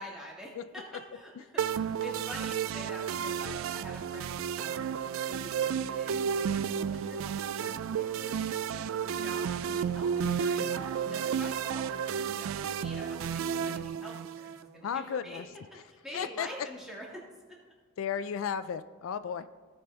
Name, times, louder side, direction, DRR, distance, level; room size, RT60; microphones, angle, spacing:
voice 1, 0.0-4.9 5.3-15.4 15.8-17.2 17.5-17.6 18.1-18.2, equal, ahead, -4 dB, 1.8 m, -46 dB
sound 1, 1.6-14.6, right 7 dB, 75° right, 0.3 m, -32 dB
voice 2, 14.8-15.4 16.1-16.5 18.0-19.4, left 7 dB, 75° left, 13 dB, 0.3 m, -34 dB
16.5 x 5.5 x 3.4 m, 1.4 s
head